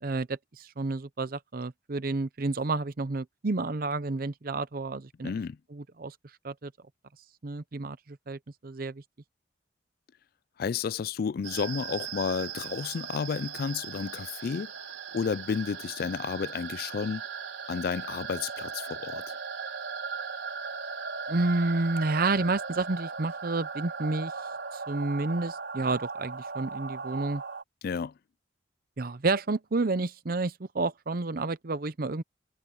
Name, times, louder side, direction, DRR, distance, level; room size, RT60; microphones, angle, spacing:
voice 1, 0.0-5.3 5.7-6.1 6.4-6.7 7.4-9.0 21.3-24.3 24.7-27.4 29.0-32.2, right 3 dB, 50° right, 0.7 m, -30 dB
voice 2, 5.2-5.6 10.6-14.7 15.1-17.2 17.7-19.4 27.8-28.1, left 6 dB, 55° left, 0.3 m, -31 dB
sound 1, 11.4-27.6, right 5 dB, 75° right, 3.9 m, -38 dB
head